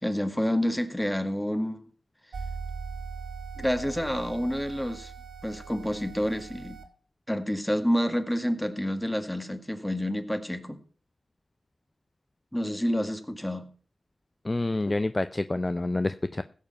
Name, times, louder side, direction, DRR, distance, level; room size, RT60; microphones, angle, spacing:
voice 1, 0.0-1.9 3.6-5.1 5.4-6.8 7.3-10.8 12.5-13.7, equal, 10° left, 9 dB, 1.8 m, -28 dB
sound 1, 2.3-6.8, right 5 dB, 90° right, 1.7 m, -40 dB
voice 2, 14.5-16.4, left 2 dB, 30° left, 12 dB, 0.5 m, -28 dB
16.0 x 7.4 x 5.6 m, 0.43 s
cardioid pair, 65°, 0 cm